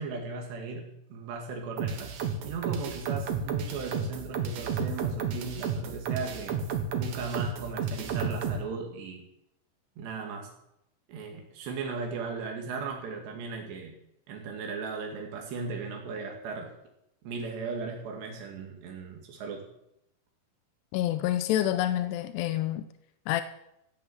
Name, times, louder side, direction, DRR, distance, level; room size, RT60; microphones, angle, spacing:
voice 1, 0.0-2.2 2.4-6.6 6.9-9.3 10.0-10.5 11.1-14.0 14.3-16.7 17.2-19.7, right 4 dB, 85° right, 4.4 m, -37 dB
sound 1, 1.8-8.6, right 6 dB, 55° right, 2.3 m, -32 dB
voice 2, 20.9-22.9 23.3-23.4, left 13 dB, 90° left, 2.9 m, -27 dB
16.5 x 8.1 x 8.6 m
omnidirectional pair, 4.8 m